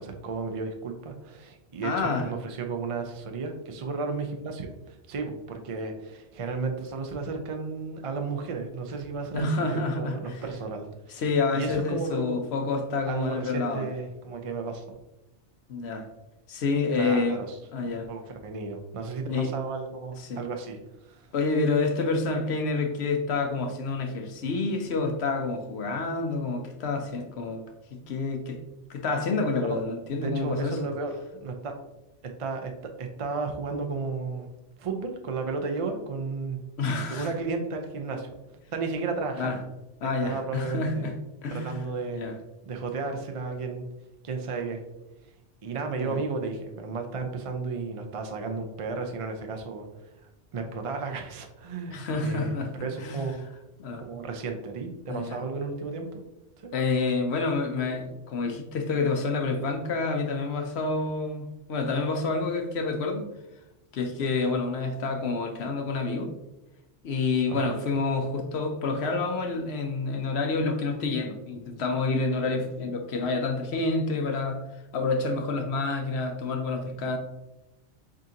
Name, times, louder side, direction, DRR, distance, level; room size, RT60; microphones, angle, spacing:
voice 1, 0.0-11.2 11.5-12.3 13.1-15.0 17.0-17.6 17.9-20.8 21.0-21.3 29.7-29.8 30.1-31.7 32.4-32.7 33.0-34.5 34.8-36.6 37.1-38.3 38.7-39.6 40.2-41.1 41.5-42.2 42.7-43.8 44.2-44.8 45.6-50.1 50.5-52.5 52.8-53.4 53.9-56.2 56.6-56.7 67.5-67.7, right 4 dB, 50° right, 4 dB, 0.4 m, -33 dB
voice 2, 1.8-2.3 9.3-10.4 11.1-13.9 15.7-16.1 16.5-17.4 17.7-18.1 19.3-19.5 20.2-20.4 21.3-27.6 27.9-28.6 28.9-30.8 36.8-37.3 39.4-39.6 40.0-41.1 41.4-41.8 42.1-42.4 46.0-46.2 51.9-52.7 53.0-53.2 53.8-54.0 55.1-55.4 56.7-63.3 63.9-66.3 67.0-74.6 74.9-77.2, left 3 dB, 65° left, 4 dB, 0.9 m, -28 dB
7.4 x 2.5 x 2.8 m, 0.96 s
omnidirectional pair, 1.2 m